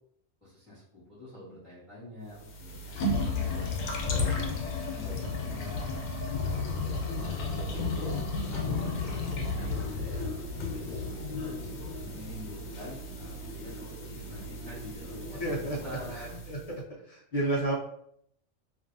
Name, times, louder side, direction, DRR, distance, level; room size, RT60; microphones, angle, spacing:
voice 1, 0.4-4.3 4.8-5.9 6.3-8.1 8.5-11.5 12.1-16.4, left 1 dB, ahead, -10 dB, 1.2 m, -46 dB
sound 1, 2.3-16.7, left 3 dB, 85° left, 1.0 m, -33 dB
sound 2, 8.5-16.2, right 2 dB, 25° right, 0.6 m, -49 dB
voice 2, 15.4-15.8 16.1-16.8 17.1-17.7, right 1 dB, 50° left, -4 dB, 0.4 m, -31 dB
2.6 x 2.6 x 2.5 m, 0.72 s
omnidirectional pair, 1.3 m